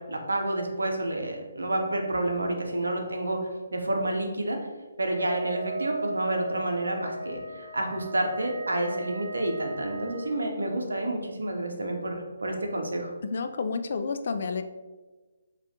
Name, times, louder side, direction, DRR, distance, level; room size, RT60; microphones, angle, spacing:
voice 1, 0.0-4.6 5.0-13.1, right 1 dB, 75° right, 3 dB, 0.7 m, -29 dB
Wind instrument woodwind instrument, 5.1-10.4, right 2 dB, 30° right, 1.5 m, -37 dB
voice 2, 13.2-14.6, left 4 dB, 50° left, 8 dB, 0.3 m, -30 dB
5.4 x 2.4 x 2.7 m, 1.3 s
figure-of-eight pair, 140°, 0 cm